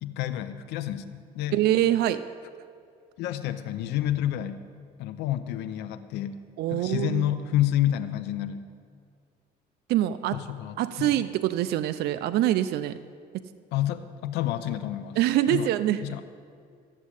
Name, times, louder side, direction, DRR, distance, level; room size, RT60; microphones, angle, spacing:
voice 1, 0.0-1.6 3.2-4.7 5.0-8.7 10.3-11.2 13.7-15.2 15.5-15.7 16.0-16.2, left 12 dB, 85° left, 9 dB, 0.7 m, -29 dB
voice 2, 1.5-2.2 6.6-7.3 9.9-10.4 10.8-13.0 13.3-13.4 15.2-16.0, right 13 dB, 70° right, 11 dB, 0.5 m, -24 dB
13.0 x 7.3 x 9.8 m, 2.3 s
cardioid pair, 110°, 17 cm